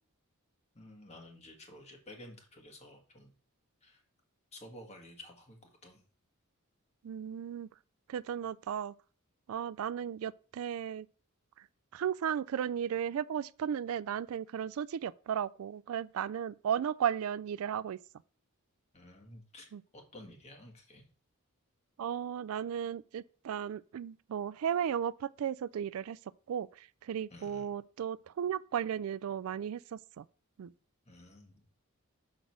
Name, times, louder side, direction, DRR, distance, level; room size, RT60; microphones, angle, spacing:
voice 1, 0.7-3.3 3.8-4.0 4.5-6.0 18.9-21.0 27.3-27.7 31.1-31.8, left 1 dB, 30° left, 1.8 m, -52 dB
voice 2, 7.0-7.7 8.1-8.9 9.5-11.1 11.9-18.0 19.7-19.8 22.0-26.2 26.5-30.2 30.6-30.7, right 8 dB, 75° right, 0.3 m, -35 dB
6.1 x 5.2 x 6.1 m
head